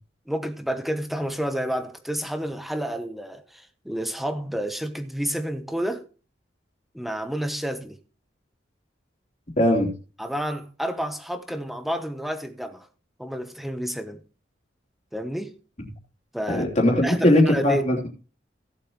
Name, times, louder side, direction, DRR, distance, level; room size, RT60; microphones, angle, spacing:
voice 1, 0.3-6.0 6.9-8.0 10.2-12.9 13.2-14.2 15.1-15.6 16.3-16.7 17.0-17.8, equal, ahead, 0.9 m, -30 dB
voice 2, 9.6-9.9 16.5-18.1, left 1 dB, 40° left, 3.2 m, -20 dB
17.0 x 7.8 x 3.0 m
head